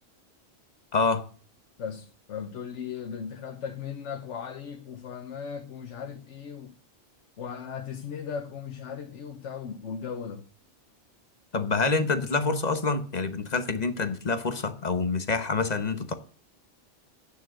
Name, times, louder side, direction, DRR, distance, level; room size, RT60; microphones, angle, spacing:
voice 1, 0.9-1.2 11.5-16.1, left 4 dB, 40° left, 1.1 m, -27 dB
voice 2, 1.8-6.7 7.4-10.5, left 7 dB, 85° left, 1.2 m, -37 dB
9.0 x 6.9 x 7.7 m
omnidirectional pair, 1.2 m